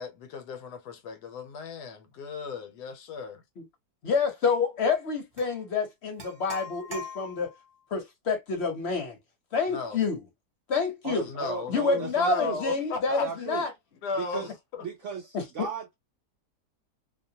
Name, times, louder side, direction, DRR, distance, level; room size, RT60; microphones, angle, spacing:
voice 1, 0.0-3.4 9.7-10.0 11.1-13.5 14.0-14.9, left 4 dB, 75° left, 1.2 m, -36 dB
voice 2, 4.0-7.5 7.9-9.2 9.5-10.2 10.7-11.3 11.7-13.7 15.3-15.7, left 4 dB, 50° left, 0.9 m, -28 dB
sound 1, 5.4-5.5 6.2-7.7, left 3 dB, 20° right, 0.7 m, -41 dB
voice 3, 11.0-12.6 13.1-13.7 14.2-14.5 14.8-15.9, right 7 dB, 75° right, 0.7 m, -36 dB
2.8 x 2.2 x 2.7 m
omnidirectional pair, 1.8 m